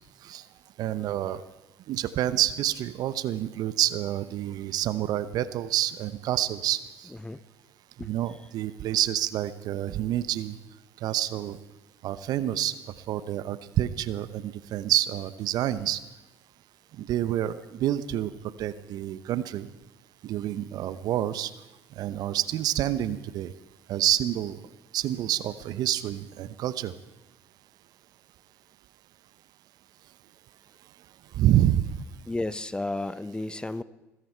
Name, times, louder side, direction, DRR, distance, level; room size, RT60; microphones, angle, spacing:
voice 1, 0.8-1.4 1.9-7.1 8.0-10.6 11.0-11.6 12.0-12.8 13.1-16.0 17.0-19.7 20.2-21.5 22.0-23.5 23.9-24.6 24.9-26.9 31.3-32.0, right 12 dB, 60° right, 15 dB, 0.9 m, -28 dB
voice 2, 7.1-7.4 8.0-8.1 32.3-33.8, left 2 dB, 10° left, 17 dB, 0.7 m, -32 dB
20.5 x 15.5 x 4.5 m, 1.0 s
hypercardioid pair, 65°, 8 cm